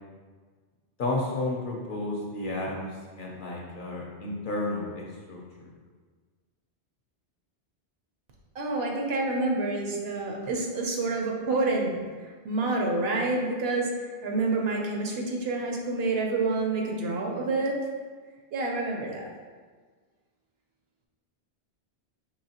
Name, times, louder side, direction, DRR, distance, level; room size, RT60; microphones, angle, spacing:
voice 1, 1.0-5.7 10.4-10.5, left 2 dB, 55° left, -2 dB, 0.8 m, -32 dB
voice 2, 8.5-17.8 18.5-19.3, right 3 dB, 65° right, 0 dB, 0.8 m, -28 dB
4.7 x 2.8 x 2.8 m, 1.5 s
omnidirectional pair, 1.1 m